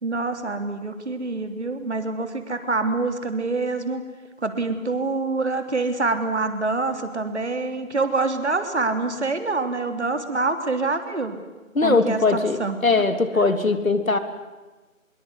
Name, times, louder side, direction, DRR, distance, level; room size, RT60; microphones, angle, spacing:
voice 1, 0.0-4.0 4.4-11.4 11.8-12.8, right 3 dB, 55° right, 8 dB, 3.5 m, -26 dB
voice 2, 11.7-14.2, left 3 dB, 75° left, 10 dB, 3.4 m, -20 dB
24.5 x 22.5 x 9.9 m, 1.2 s
figure-of-eight pair, 175°, 41 cm